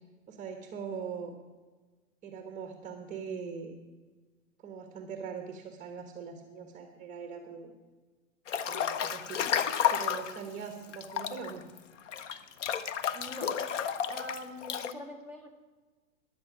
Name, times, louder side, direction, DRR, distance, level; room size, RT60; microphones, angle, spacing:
voice 1, 0.3-1.3 2.2-3.7 4.6-7.7 8.7-11.6, right 6 dB, 20° right, 5 dB, 1.3 m, -41 dB
Breathing / Bathtub (filling or washing) / Splash splatter, 8.5-10.4 10.9-14.9, left 8 dB, 65° left, 1.1 m, -31 dB
voice 2, 13.1-13.6 14.1-15.5, left 1 dB, 15° left, 3 dB, 1.9 m, -43 dB
16.0 x 11.0 x 6.2 m, 1.3 s
supercardioid pair, 165°, 38 cm